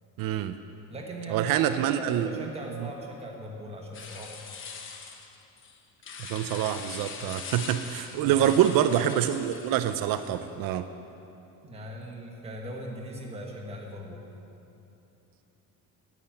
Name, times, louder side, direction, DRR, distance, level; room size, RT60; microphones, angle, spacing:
voice 1, 0.2-0.6 1.3-2.4 6.2-10.8, right 11 dB, 80° right, 10 dB, 0.6 m, -26 dB
voice 2, 0.9-4.5 8.2-8.5 11.6-14.3, right 1 dB, 20° right, 0 dB, 1.4 m, -39 dB
sound 1, 3.9-10.5, left 5 dB, 35° left, 0.9 m, -42 dB
9.7 x 9.0 x 8.8 m, 2.9 s
cardioid pair, 180°, 34 cm